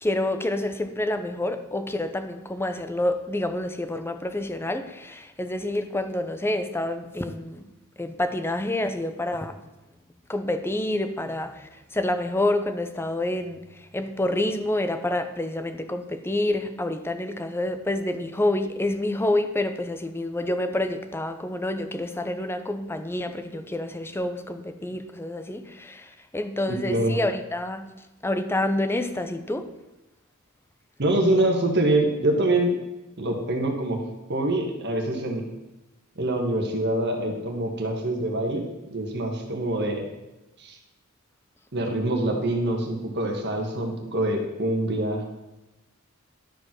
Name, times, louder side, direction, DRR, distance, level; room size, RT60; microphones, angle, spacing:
voice 1, 0.0-7.7 8.0-9.5 10.3-27.9 28.2-29.7, left 1 dB, 10° left, 9 dB, 0.6 m, -28 dB
voice 2, 26.7-27.1 31.0-32.7 33.2-34.0 34.3-35.4 36.2-38.6 38.9-40.1 40.6-40.8 41.7-45.2, right 1 dB, 55° right, 2 dB, 1.4 m, -25 dB
12.0 x 5.1 x 6.0 m, 1.0 s
head